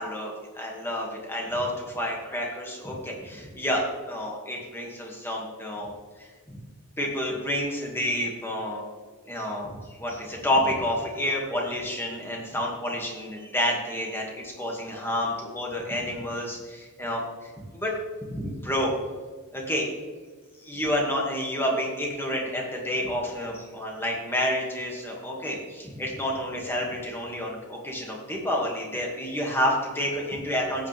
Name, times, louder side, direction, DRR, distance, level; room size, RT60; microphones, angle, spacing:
voice 1, 0.0-5.9 6.2-6.6 7.0-8.8 9.3-17.9 18.3-18.9 19.5-19.9 20.6-30.9, left 1 dB, 10° left, -2 dB, 2.3 m, -29 dB
15.5 x 8.7 x 3.6 m, 1.4 s
head